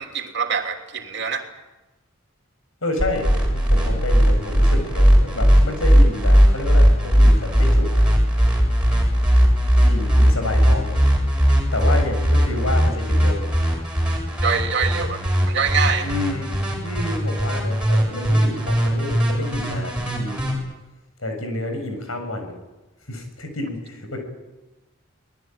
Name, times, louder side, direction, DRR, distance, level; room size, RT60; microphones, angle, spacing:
voice 1, 0.0-1.5 14.4-16.1, right 6 dB, 55° right, 4 dB, 3.1 m, -25 dB
voice 2, 2.8-8.0 9.8-11.0 11.7-13.5 16.0-20.6 21.2-22.5 23.1-24.2, left 2 dB, 85° left, 5 dB, 7.2 m, -29 dB
sound 1, 3.0-20.5, equal, 5° right, 6.8 m, -17 dB
25.5 x 19.5 x 9.2 m, 1.1 s
head